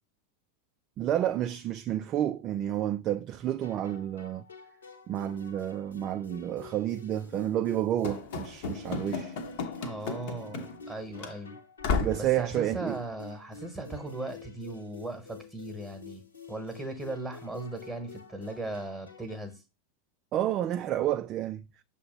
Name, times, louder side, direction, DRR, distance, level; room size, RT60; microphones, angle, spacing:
voice 1, 1.0-4.4 5.1-9.4 12.0-13.0 20.3-21.6, right 12 dB, 35° right, 0.3 m, -30 dB
sound 1, 3.6-19.6, left 3 dB, 75° left, 1.3 m, -49 dB
Run / Slam, 8.0-10.9 11.2-11.3 11.8-12.3, left 5 dB, 50° left, 0.9 m, -33 dB
voice 2, 9.8-11.6 12.2-16.2 16.5-19.6, right 2 dB, 5° right, 1.1 m, -38 dB
6.8 x 2.8 x 5.2 m
figure-of-eight pair, 90°, 0 cm